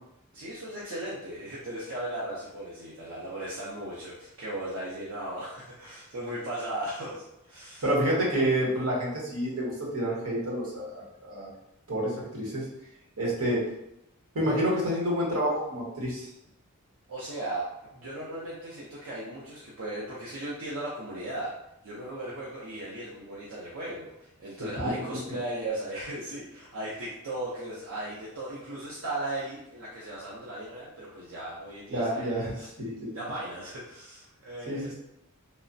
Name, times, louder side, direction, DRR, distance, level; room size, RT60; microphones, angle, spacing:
voice 1, 0.3-7.9 17.1-21.5 21.8-32.6 33.1-34.9, right 1 dB, 65° right, -7 dB, 0.6 m, -37 dB
voice 2, 7.8-11.5 11.9-12.6 13.2-13.7 14.3-16.3 24.6-24.7 31.9-32.9 34.7-35.0, equal, 85° right, -4 dB, 1.1 m, -28 dB
3.1 x 2.0 x 2.5 m, 0.84 s
head